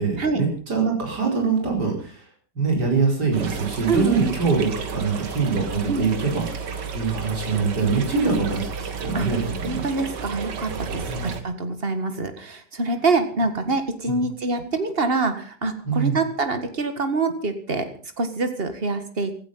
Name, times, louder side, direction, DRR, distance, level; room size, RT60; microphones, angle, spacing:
voice 1, 0.0-2.2 2.6-9.9 11.1-11.3 14.1-14.2 15.8-16.2, right 5 dB, 70° right, 0 dB, 5.3 m, -24 dB
sound 1, 3.3-11.4, right 6 dB, 85° right, 2.2 m, -33 dB
voice 2, 3.9-4.3 5.9-6.1 8.1-8.3 9.1-9.3 9.6-17.9 18.2-19.3, right 3 dB, 35° right, 8 dB, 2.1 m, -25 dB
16.5 x 14.0 x 5.6 m, 0.41 s
omnidirectional pair, 1.8 m